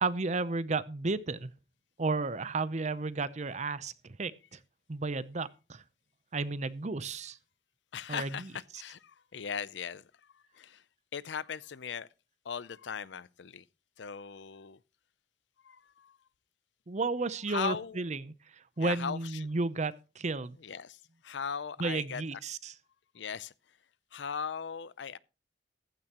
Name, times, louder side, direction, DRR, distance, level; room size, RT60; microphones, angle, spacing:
voice 1, 0.0-1.5 2.0-4.6 4.9-5.8 6.3-7.4 8.1-8.5 16.9-20.6 21.8-22.7, right 3 dB, 40° right, 0.7 m, -33 dB
voice 2, 7.9-10.8 11.1-12.1 12.4-13.6 14.0-14.8 15.6-16.2 17.5-18.0 18.8-19.5 20.6-22.2 23.1-23.5 24.1-25.2, left 7 dB, 85° left, 0.5 m, -39 dB
15.0 x 12.5 x 3.0 m
head